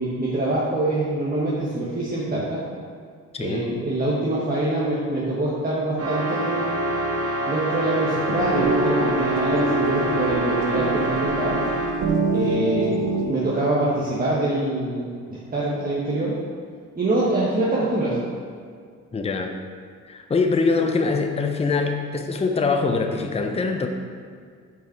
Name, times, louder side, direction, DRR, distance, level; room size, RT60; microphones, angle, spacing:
voice 1, 0.0-2.6 3.4-6.8 7.5-11.6 12.3-16.3 16.9-18.2, right 1 dB, 30° right, -7 dB, 1.2 m, -24 dB
voice 2, 3.3-3.7 19.1-19.5 20.0-23.9, left 4 dB, 20° left, 4 dB, 0.6 m, -23 dB
sound 1, 6.0-12.1, right 1 dB, 55° right, 1.4 m, -26 dB
sound 2, 8.3-13.3, right 3 dB, 90° right, 0.7 m, -26 dB
5.7 x 4.9 x 4.5 m, 2.1 s
cardioid pair, 90°, 30 cm